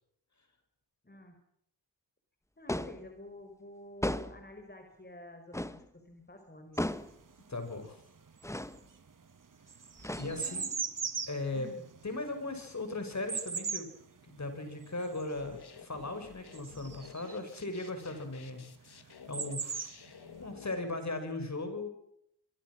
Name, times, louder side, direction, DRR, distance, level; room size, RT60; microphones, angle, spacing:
voice 1, 1.0-1.4 2.6-6.9 10.2-10.8 11.5-11.8, left 2 dB, 25° left, 5 dB, 4.8 m, -50 dB
sound 1, 2.7-3.1 4.0-4.5 5.5-5.9 6.8-7.2 8.4-8.8 10.0-10.6, left 1 dB, 5° left, 1.2 m, -35 dB
sound 2, 6.7-7.9 8.2-17.5 18.6-18.7 18.9-20.4, right 5 dB, 50° right, 1.8 m, -39 dB
voice 2, 7.5-8.0 10.1-10.7 11.3-11.7 12.0-13.9 14.2-19.9 20.4-21.9, left 2 dB, 40° left, 7 dB, 6.3 m, -38 dB
sound 3, 15.3-20.8, left 7 dB, 65° left, 2.2 m, -52 dB
25.0 x 23.5 x 6.3 m, 0.72 s
cardioid pair, 60°, 42 cm